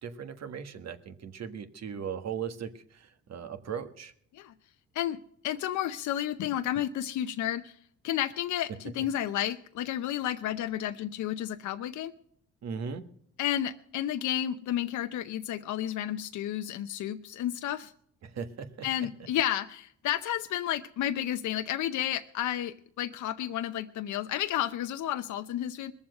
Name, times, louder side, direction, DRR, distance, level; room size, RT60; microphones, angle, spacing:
voice 1, 0.0-4.1 12.6-13.0 18.2-18.7, right 7 dB, 60° right, 9 dB, 1.5 m, -38 dB
voice 2, 5.4-7.7 8.0-12.1 13.4-17.9 18.8-25.9, left 11 dB, 75° left, 9 dB, 0.7 m, -31 dB
21.5 x 7.3 x 6.5 m, 0.66 s
cardioid pair, 90°, 30 cm